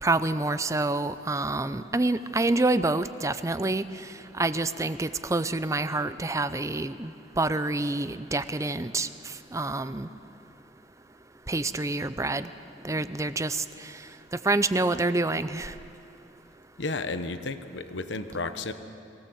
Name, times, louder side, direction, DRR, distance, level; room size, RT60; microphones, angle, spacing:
voice 1, 0.0-3.8 4.4-10.1 11.5-12.5 12.8-13.9 14.4-15.7, right 2 dB, 15° right, 13 dB, 0.5 m, -27 dB
voice 2, 16.8-18.7, left 3 dB, 85° left, 10 dB, 1.1 m, -32 dB
22.5 x 17.0 x 7.9 m, 2.7 s
head